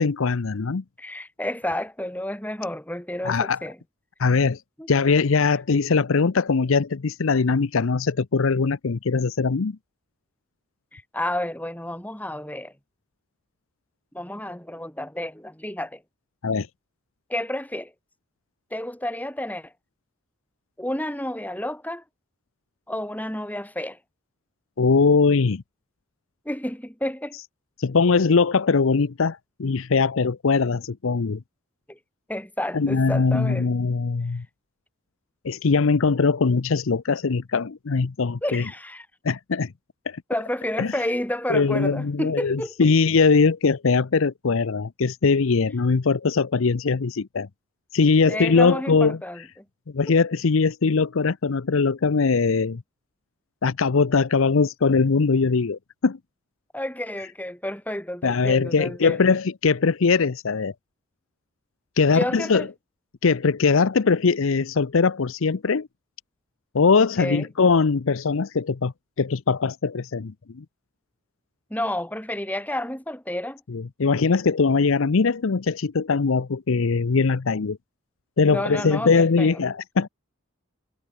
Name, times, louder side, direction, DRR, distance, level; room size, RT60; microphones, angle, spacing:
voice 1, 0.0-0.8 3.2-3.6 4.2-4.6 4.9-9.8 16.4-16.7 24.8-25.6 27.8-31.4 32.7-34.5 35.4-38.6 39.2-39.7 40.1-40.2 40.8-40.9 41.5-47.5 47.9-49.2 49.9-52.8 53.6-56.2 58.2-60.7 62.0-62.7 63.2-65.9 66.7-70.6 73.7-77.8 78.4-80.1, left 4 dB, 70° left, 0.6 m, -21 dB
voice 2, 1.0-3.8 4.8-4.9 10.9-12.7 14.1-16.0 17.3-17.9 18.7-19.7 20.8-22.0 22.9-24.0 26.4-27.4 31.9-32.0 32.3-33.8 38.4-39.1 40.3-42.9 48.2-49.6 50.1-50.2 56.7-59.3 62.1-62.7 67.2-67.5 71.7-73.6 78.5-79.6, left 1 dB, 10° left, 4.7 m, -30 dB
head